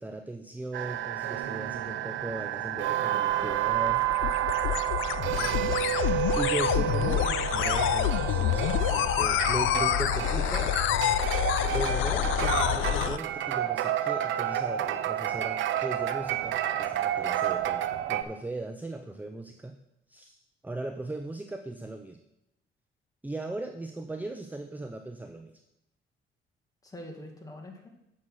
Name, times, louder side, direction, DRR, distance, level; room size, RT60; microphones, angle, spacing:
voice 1, 0.0-4.1 6.4-7.3 7.5-10.8 11.7-19.7 20.1-22.2 23.2-25.5, right 2 dB, 10° right, 7 dB, 0.6 m, -38 dB
sound 1, 0.7-18.2, right 11 dB, 75° right, 0.6 m, -30 dB
sound 2, 3.3-13.2, left 13 dB, 85° left, 0.4 m, -27 dB
voice 2, 6.8-7.5 26.8-27.9, left 1 dB, 20° left, 0 dB, 2.1 m, -42 dB
7.6 x 5.7 x 6.3 m, 0.87 s
cardioid pair, 90°, 20 cm